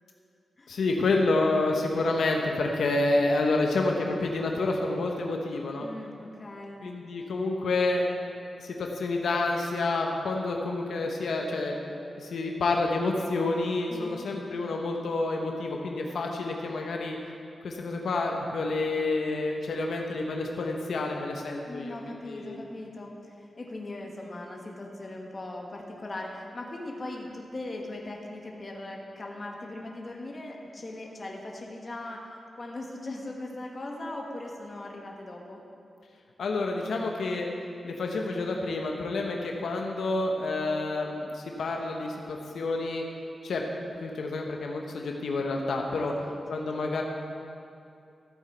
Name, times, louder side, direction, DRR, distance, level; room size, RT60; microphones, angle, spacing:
voice 1, 0.7-5.9 6.8-8.1 8.6-11.8 12.2-17.2 17.6-22.6 36.4-37.5 37.8-43.0 43.4-43.6 44.0-46.1 46.5-47.0, left 2 dB, 85° left, 1 dB, 0.9 m, -29 dB
voice 2, 5.8-6.8 13.9-14.3 21.7-35.6 45.9-46.9, left 2 dB, 35° left, 0 dB, 1.3 m, -40 dB
14.0 x 7.8 x 4.5 m, 2.5 s
wide cardioid pair, 135°, 0 cm